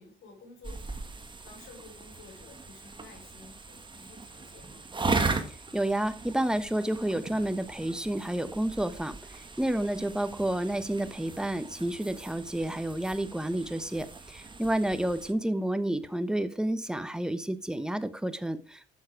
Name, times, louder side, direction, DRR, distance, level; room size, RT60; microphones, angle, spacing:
voice 1, 0.0-4.9, left 3 dB, 80° left, -1 dB, 4.9 m, -53 dB
sound 1, 0.6-15.3, right 3 dB, 25° right, 1.7 m, -38 dB
voice 2, 5.5-18.9, right 1 dB, 5° right, 11 dB, 1.1 m, -30 dB
11.5 x 7.5 x 4.8 m, 0.38 s
cardioid pair, 90°, 20 cm